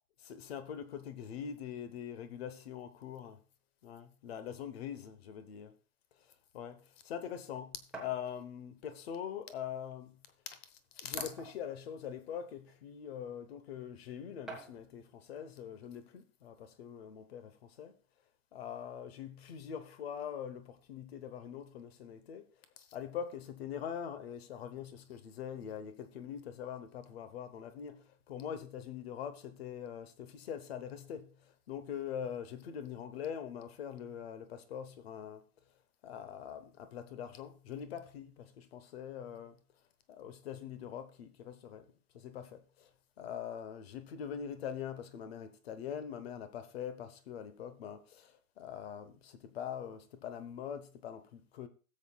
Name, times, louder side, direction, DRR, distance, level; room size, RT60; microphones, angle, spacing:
voice 1, 0.2-3.4 3.8-5.7 6.5-18.0 18.5-22.5 22.8-35.4 36.0-39.6 40.1-41.9 42.1-42.9 43.2-51.7, left 8 dB, 45° left, 1.1 m, -43 dB
sound 1, 7.9-8.2 9.3-9.4 9.9-10.0 11.2-11.8 12.6-12.7 14.5-14.9, right 3 dB, ahead, 0.9 m, -46 dB
16.5 x 7.6 x 2.4 m
hypercardioid pair, 160°, 44 cm